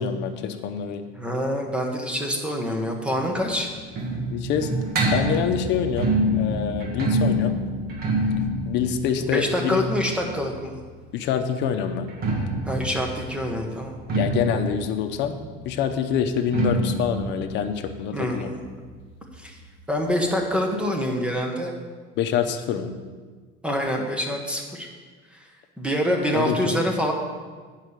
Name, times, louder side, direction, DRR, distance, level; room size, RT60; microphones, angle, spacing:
voice 1, 0.0-1.0 4.3-4.7 5.1-7.5 8.7-9.9 11.1-12.1 14.1-15.4 15.6-18.5 22.2-23.0 26.3-26.8, left 8 dB, 60° left, 6 dB, 0.8 m, -26 dB
voice 2, 1.1-3.7 9.2-10.8 12.7-14.0 18.1-18.6 19.4-19.6 19.9-21.7 23.6-24.9 25.3-25.5 25.8-27.1, equal, 5° right, 1 dB, 1.1 m, -26 dB
sound 1, 3.1-10.8 11.9-19.3 19.6-19.7 19.9-20.0 20.7-20.8, right 1 dB, 45° right, 1.5 m, -27 dB
9.0 x 5.7 x 6.5 m, 1.5 s
cardioid pair, 155°, 21 cm